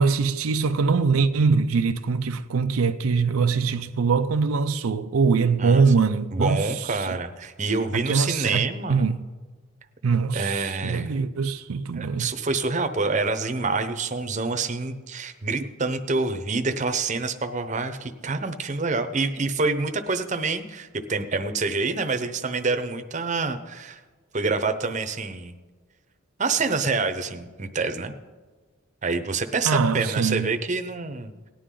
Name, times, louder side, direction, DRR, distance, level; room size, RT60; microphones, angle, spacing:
voice 1, 0.0-7.2 7.9-9.3 10.0-12.3 29.6-30.5, right 5 dB, 85° right, 0.5 m, -23 dB
voice 2, 6.3-9.0 10.3-11.1 12.0-24.0 24.3-25.5 26.4-28.1 29.0-31.3, right 3 dB, 35° right, 0.8 m, -27 dB
18.0 x 10.0 x 3.8 m
head